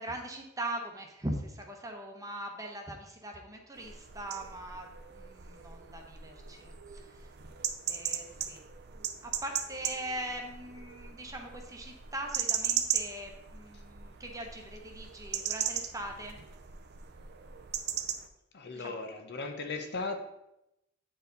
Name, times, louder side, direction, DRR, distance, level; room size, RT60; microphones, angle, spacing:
voice 1, 0.0-7.3 7.9-8.6 8.9-16.4 18.7-19.0, right 1 dB, 15° right, 2 dB, 1.0 m, -41 dB
sound 1, 3.8-18.3, right 9 dB, 55° right, 0.6 m, -38 dB
voice 2, 18.5-20.2, left 3 dB, 55° left, 5 dB, 0.8 m, -37 dB
8.6 x 4.6 x 4.0 m, 0.86 s
head